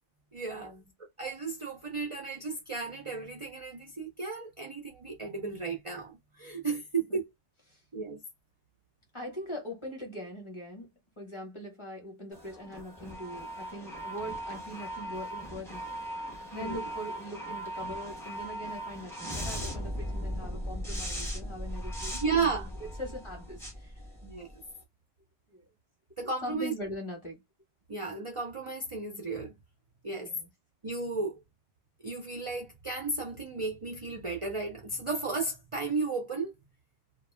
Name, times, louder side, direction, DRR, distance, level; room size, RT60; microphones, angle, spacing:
voice 1, 0.3-0.7 1.2-7.3 7.9-8.2 16.5-16.8 22.2-22.7 24.2-24.5 26.2-26.7 27.9-29.5 30.0-30.3 30.8-31.4 32.0-36.5, right 4 dB, 45° right, 0.4 m, -34 dB
voice 2, 9.1-10.9 11.2-16.0 16.4-22.5 23.0-23.9 25.5-25.7 26.4-27.4 30.2-30.5, equal, 25° left, 0.8 m, -42 dB
sound 1, 12.3-24.7, equal, 5° left, 0.5 m, -38 dB
2.3 x 2.1 x 3.1 m
omnidirectional pair, 1.3 m